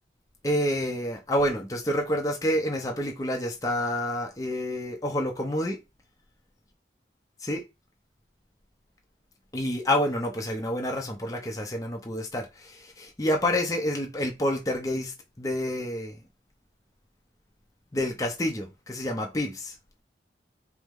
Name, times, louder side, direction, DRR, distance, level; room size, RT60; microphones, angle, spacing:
voice 1, 0.4-5.8 7.4-7.6 9.5-16.2 17.9-19.7, left 1 dB, 20° left, 0.6 m, -28 dB
4.7 x 2.0 x 3.5 m
head